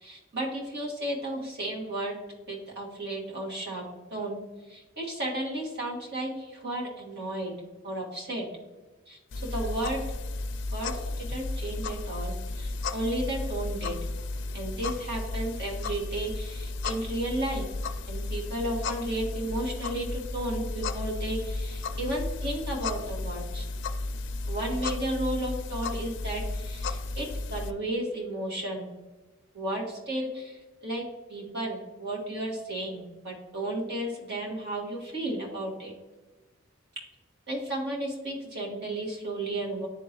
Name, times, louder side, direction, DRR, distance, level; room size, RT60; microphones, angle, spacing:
voice 1, 0.0-2.1 2.5-3.8 4.1-4.4 4.7-7.5 7.8-8.5 9.1-10.0 10.7-13.9 14.5-17.6 18.1-23.7 24.5-28.9 29.5-31.0 31.3-35.9 37.5-39.9, right 1 dB, 55° right, -3 dB, 1.8 m, -33 dB
sound 1, 9.3-27.7, left 2 dB, 60° left, 0.4 m, -34 dB
11.0 x 3.7 x 3.0 m, 1.2 s
head